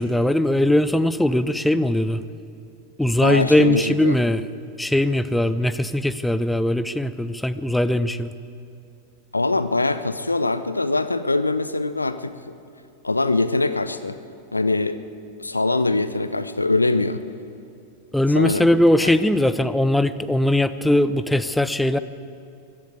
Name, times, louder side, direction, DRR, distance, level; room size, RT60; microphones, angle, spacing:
voice 1, 0.0-2.2 3.0-4.4 4.8-8.3 18.1-22.0, left 1 dB, 5° left, 13 dB, 0.5 m, -20 dB
voice 2, 3.2-4.2 9.3-12.6 13.0-14.2 14.5-15.0 15.4-17.2 18.3-18.7 19.0-19.1, left 2 dB, 80° left, 13 dB, 0.6 m, -23 dB
14.5 x 11.5 x 8.4 m, 2.5 s
figure-of-eight pair, 90°, 0 cm